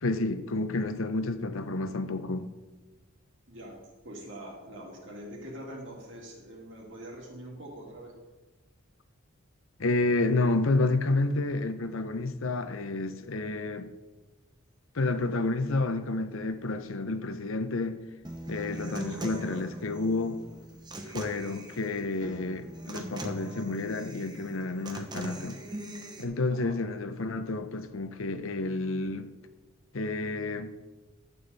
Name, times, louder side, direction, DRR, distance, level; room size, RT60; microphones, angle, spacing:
voice 1, 0.0-2.5 9.8-13.9 14.9-18.0 18.5-20.4 21.0-25.6 26.2-29.3 29.9-30.8, left 2 dB, 80° left, 0.8 m, -30 dB
voice 2, 3.5-3.8 4.0-8.1 26.5-26.8, right 1 dB, 65° right, 3.0 m, -44 dB
Human voice / Acoustic guitar, 18.2-26.2, right 1 dB, 20° right, 0.9 m, -40 dB
12.5 x 8.7 x 4.1 m
head